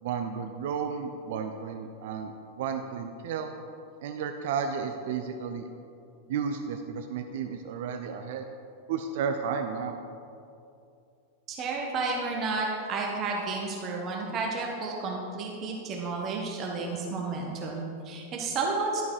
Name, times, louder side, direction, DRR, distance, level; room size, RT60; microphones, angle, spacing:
voice 1, 0.0-3.5 4.0-5.7 6.3-8.5 8.9-10.0, right 6 dB, 55° right, 6 dB, 0.5 m, -33 dB
voice 2, 11.5-19.0, right 3 dB, 30° right, -1 dB, 1.2 m, -31 dB
12.0 x 5.4 x 4.7 m, 2.6 s
figure-of-eight pair, 90°, 0 cm